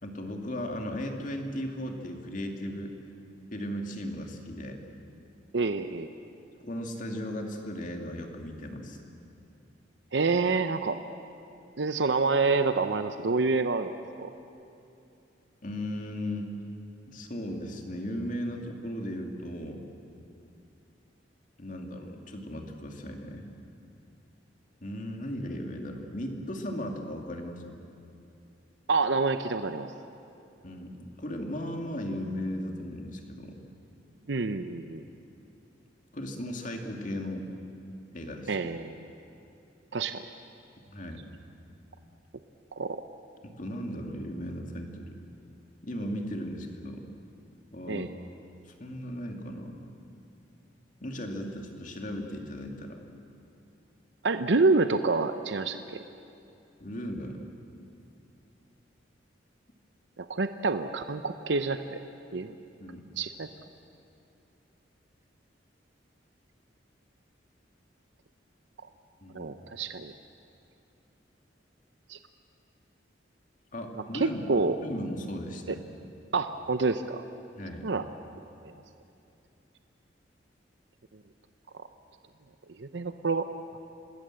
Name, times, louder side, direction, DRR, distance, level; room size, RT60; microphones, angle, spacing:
voice 1, 0.0-3.0 3.5-4.8 6.6-9.0 15.6-16.5 17.1-19.8 21.6-23.5 24.8-27.6 30.6-33.6 35.1-35.2 36.1-37.5 38.1-38.7 40.9-41.2 43.4-45.2 45.8-47.0 47.7-48.1 48.7-49.8 51.0-53.0 56.8-57.4 62.8-63.0 69.2-69.5 73.7-74.4 74.8-75.8 77.6-77.9, equal, 45° left, 3 dB, 2.4 m, -36 dB
voice 2, 5.5-6.1 10.1-11.0 11.8-14.3 28.9-29.9 34.3-35.0 38.5-39.1 39.9-40.2 42.8-43.0 47.9-48.1 54.2-56.0 60.2-62.0 62.3-62.5 63.2-63.5 69.3-70.1 72.1-72.2 74.1-74.8 75.7-75.8 76.3-77.2 77.8-78.0 78.6-78.7 81.7-81.9 82.8-83.5, right 3 dB, 75° right, 9 dB, 0.7 m, -27 dB
26.5 x 20.0 x 7.7 m, 2.7 s
head